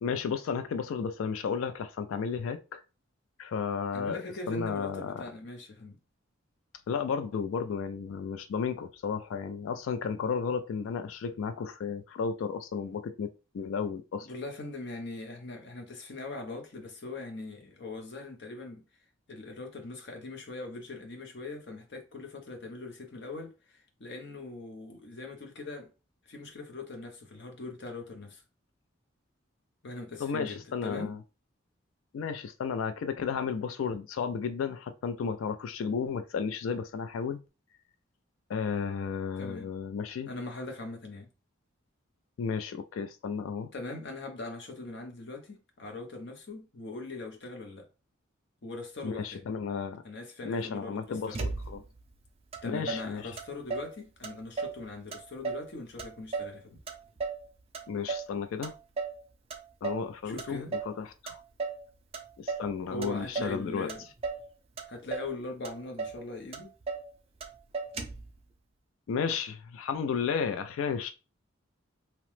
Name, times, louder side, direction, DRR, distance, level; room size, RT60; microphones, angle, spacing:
voice 1, 0.0-2.8 3.4-4.2 4.5-5.2 6.9-14.3 30.2-31.2 32.1-37.4 38.5-40.3 42.4-43.7 49.0-50.0 50.4-51.8 52.6-53.2 57.9-58.7 59.8-60.6 61.0-61.4 62.4-63.9 69.1-71.1, left 6 dB, 75° left, 0.3 m, -33 dB
voice 2, 3.9-6.0 14.2-18.8 19.3-25.9 26.3-28.4 29.8-31.1 39.4-39.7 40.3-41.3 43.7-47.9 48.6-49.5 50.0-51.4 52.6-56.8 60.2-60.7 62.9-64.0 64.9-66.7, left 2 dB, 55° left, 0.7 m, -41 dB
Motor vehicle (road), 51.3-52.0 52.5-52.6 52.9-53.9 54.2-54.8 55.1-55.7 56.0-57.5 57.7-58.3 58.6-59.2 59.5-60.1 60.4-61.0 61.3-61.8 62.1-62.7 63.0-63.6 63.9-64.5 64.8-65.3 65.6-65.7 66.0-66.2 66.5-67.1 67.4-67.5 67.7-68.3, right 4 dB, 30° right, 0.4 m, -35 dB
2.9 x 2.0 x 3.1 m
head